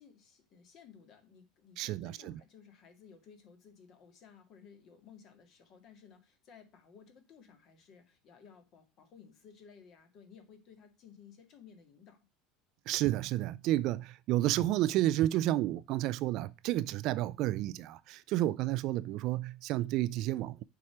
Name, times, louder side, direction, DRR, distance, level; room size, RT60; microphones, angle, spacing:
voice 1, 0.0-12.2, left 7 dB, 40° left, 2.1 m, -57 dB
voice 2, 1.8-2.3 12.9-20.6, right 15 dB, 45° right, 0.4 m, -31 dB
7.2 x 4.8 x 6.0 m
cardioid pair, 165°, 0 cm